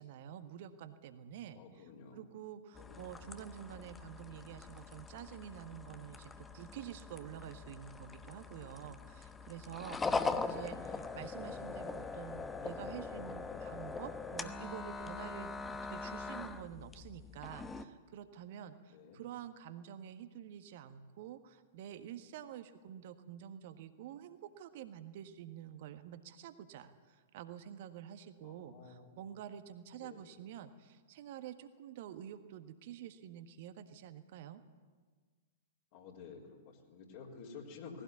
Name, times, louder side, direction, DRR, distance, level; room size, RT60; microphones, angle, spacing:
voice 1, 0.0-34.6, right 10 dB, 50° right, 10 dB, 1.5 m, -48 dB
voice 2, 1.5-2.2 2.7-3.0 18.9-19.2 28.4-29.2 30.0-30.3 35.9-38.0, left 5 dB, 45° left, -2 dB, 4.1 m, -52 dB
sound 1, 2.8-17.9, left 4 dB, 10° left, 1.0 m, -42 dB
19.0 x 17.0 x 9.6 m, 1.5 s
figure-of-eight pair, 105°, 0 cm